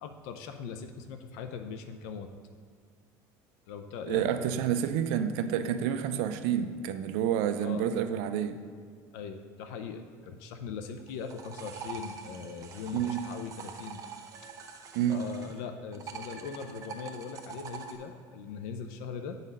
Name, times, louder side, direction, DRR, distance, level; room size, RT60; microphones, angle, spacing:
voice 1, 0.0-2.3 3.7-4.5 7.6-7.8 9.1-14.0 15.1-19.4, left 6 dB, 85° left, 7 dB, 0.5 m, -40 dB
voice 2, 4.1-8.6 12.9-13.2 14.9-15.2, right 9 dB, 80° right, 10 dB, 0.5 m, -29 dB
sound 1, 11.0-15.6 15.9-18.0, right 6 dB, 40° right, 0.8 m, -44 dB
8.4 x 4.0 x 5.3 m, 2.1 s
cardioid pair, 130°, 9 cm